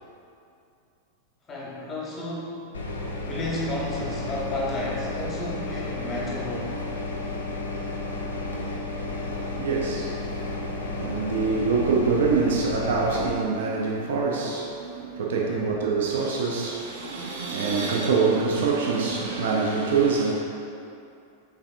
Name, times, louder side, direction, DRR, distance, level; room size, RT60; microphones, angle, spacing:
voice 1, 1.5-6.8 15.5-15.8, left 1 dB, 20° left, -5 dB, 0.8 m, -33 dB
sound 1, 2.7-13.3, left 2 dB, 70° left, 0.3 m, -32 dB
voice 2, 9.2-10.1 10.4-20.3, right 4 dB, 60° right, -2 dB, 0.4 m, -25 dB
3.4 x 3.3 x 2.4 m, 2.6 s
figure-of-eight pair, 90°, 0 cm